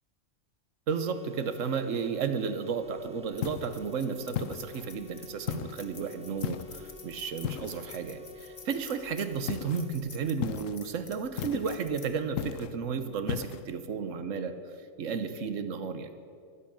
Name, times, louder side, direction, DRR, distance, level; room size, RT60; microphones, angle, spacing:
sound 1, 0.9-9.9, left 5 dB, 5° right, 0.6 m, -50 dB
voice 1, 0.9-14.6 15.0-16.1, right 6 dB, 90° right, 10 dB, 1.3 m, -33 dB
sound 2, 2.8-13.3, left 3 dB, 35° left, 1.3 m, -51 dB
sound 3, 3.4-3.8 4.4-4.9 5.5-5.9 6.4-6.9 7.4-8.0 9.5-9.8 10.4-10.8 11.4-11.8 12.4-12.8 13.3-13.6, left 11 dB, 85° left, 0.9 m, -35 dB
11.5 x 11.0 x 8.6 m, 2.3 s
omnidirectional pair, 1.3 m